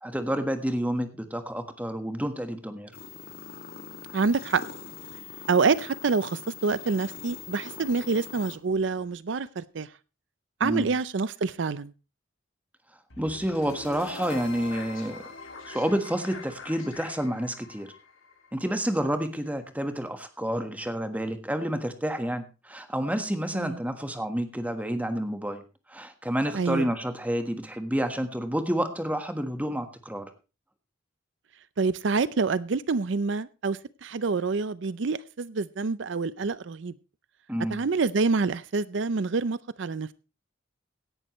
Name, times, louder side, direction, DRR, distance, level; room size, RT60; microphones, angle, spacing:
voice 1, 0.0-2.9 10.6-10.9 13.2-15.2 15.7-17.9 18.5-25.6 25.9-30.3 37.5-37.8, equal, 10° right, 1.3 m, -29 dB
sound 1, 2.9-8.5, left 6 dB, 50° left, 2.1 m, -42 dB
voice 2, 4.1-4.6 5.5-9.9 10.6-11.9 23.5-23.8 26.5-26.9 31.8-36.9 37.7-40.1, right 4 dB, 65° right, 0.5 m, -27 dB
sound 2, 13.1-19.2, left 3 dB, 90° left, 3.1 m, -43 dB
17.0 x 11.0 x 3.1 m
head